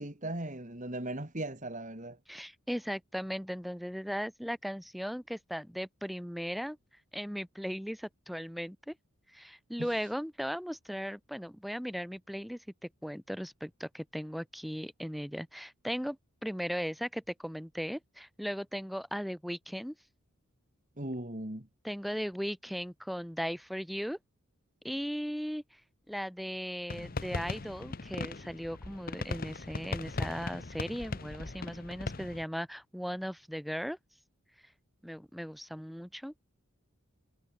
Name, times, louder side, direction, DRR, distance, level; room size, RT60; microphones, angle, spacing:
voice 1, 0.0-2.2 9.8-9.9 21.0-21.7, right 1 dB, 35° right, 2.8 m, -38 dB
voice 2, 2.3-6.8 7.1-8.9 9.3-16.2 16.4-19.9 21.8-24.2 24.8-25.8 26.1-34.0 35.0-36.3, equal, ahead, 5.0 m, -37 dB
sound 1, 26.9-32.4, left 3 dB, 40° left, 0.9 m, -39 dB
head